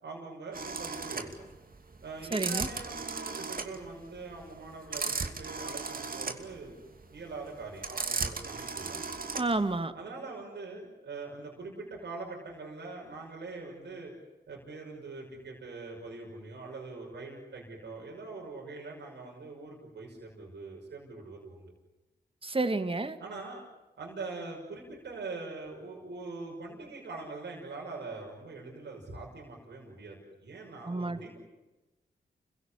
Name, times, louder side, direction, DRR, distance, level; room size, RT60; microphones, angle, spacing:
voice 1, 0.0-1.3 2.0-6.8 7.1-9.2 9.9-14.1 14.5-21.7 23.2-23.6 24.0-31.4, right 3 dB, 75° right, -1 dB, 6.2 m, -43 dB
Telephone Dialing, 0.5-9.7, right 4 dB, 55° right, 2.8 m, -36 dB
voice 2, 2.3-2.7 9.3-9.9 22.4-23.2 30.8-31.2, right 2 dB, 30° right, 10 dB, 2.4 m, -30 dB
28.5 x 17.0 x 10.0 m, 1.1 s
cardioid pair, 45°, 18 cm